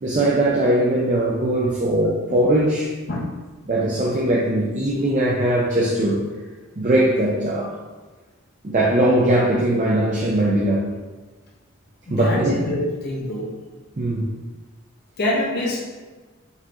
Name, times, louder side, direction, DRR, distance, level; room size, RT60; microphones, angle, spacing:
voice 1, 0.0-2.9 3.6-6.2 6.8-7.8 8.6-10.9 12.1-12.6 14.0-14.3, right 1 dB, 35° right, -4 dB, 0.5 m, -20 dB
voice 2, 12.1-13.5 15.2-15.8, left 1 dB, 50° left, -4 dB, 0.7 m, -25 dB
5.4 x 3.0 x 2.5 m, 1.3 s
head